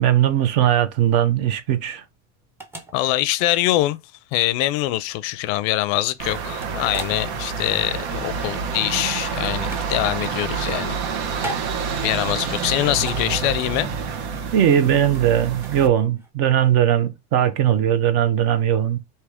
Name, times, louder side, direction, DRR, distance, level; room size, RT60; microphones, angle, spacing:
voice 1, 0.0-2.0 14.5-19.0, right 10 dB, 50° right, 0.8 m, -19 dB
sound 1, 0.9-16.3, right 2 dB, 5° right, 0.6 m, -40 dB
voice 2, 2.9-4.0 4.3-11.0 12.0-13.9, left 16 dB, 50° left, 0.5 m, -23 dB
sound 2, 6.2-15.9, right 6 dB, 90° right, 1.2 m, -28 dB
4.8 x 2.8 x 3.5 m
supercardioid pair, 160°, 33 cm